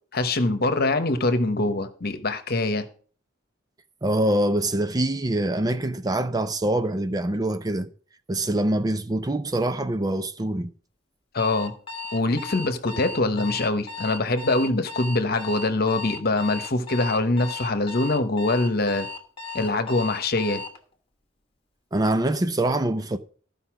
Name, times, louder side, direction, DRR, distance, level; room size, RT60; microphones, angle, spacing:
voice 1, 0.1-2.9 11.3-11.7 12.1-19.1 19.5-20.6, left 2 dB, 50° left, 1.1 m, -24 dB
voice 2, 4.0-7.9 8.3-10.7 21.9-23.2, right 1 dB, 20° right, 0.5 m, -24 dB
Alarm, 11.4-20.8, left 4 dB, 30° left, 1.2 m, -36 dB
13.5 x 5.4 x 5.9 m
head